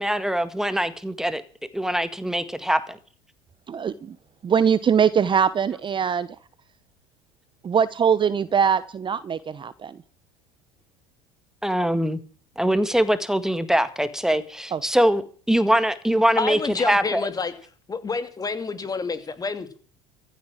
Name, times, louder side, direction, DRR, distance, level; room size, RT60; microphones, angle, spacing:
voice 1, 0.0-1.4 1.7-3.0 11.6-12.2 12.6-17.2, equal, 5° right, 12 dB, 1.8 m, -23 dB
voice 2, 3.7-4.2 4.4-6.3 7.6-10.0 14.7-14.8, right 7 dB, 30° right, 16 dB, 0.9 m, -22 dB
voice 3, 16.4-17.5 17.9-19.8, left 4 dB, 25° left, 10 dB, 2.5 m, -28 dB
15.0 x 8.5 x 7.5 m, 0.43 s
hypercardioid pair, 85°, 16 cm